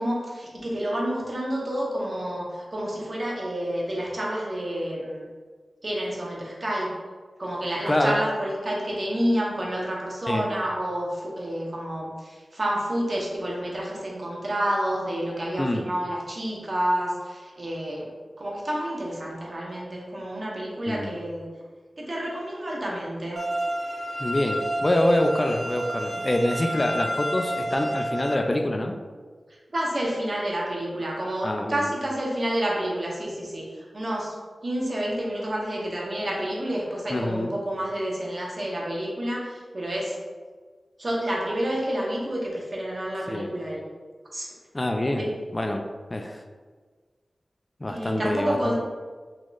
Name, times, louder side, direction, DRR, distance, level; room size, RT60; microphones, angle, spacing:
voice 1, 0.0-5.2 5.8-6.9 7.4-18.1 18.4-21.5 22.0-23.4 26.7-26.8 29.7-34.3 34.6-40.2 41.0-43.8 44.3-44.5 45.2-45.4 47.9-48.7, right 1 dB, 50° right, -3 dB, 0.9 m, -29 dB
voice 2, 7.8-8.2 10.3-10.5 15.6-15.9 20.9-21.1 24.2-29.0 31.4-31.9 37.1-37.5 43.3-43.5 44.7-45.3 45.5-46.4 47.8-48.7, left 1 dB, 30° left, 3 dB, 0.3 m, -25 dB
sound 1, 23.4-28.4, right 1 dB, 75° right, 0.7 m, -30 dB
4.1 x 3.0 x 2.4 m, 1.5 s
cardioid pair, 50°, 0 cm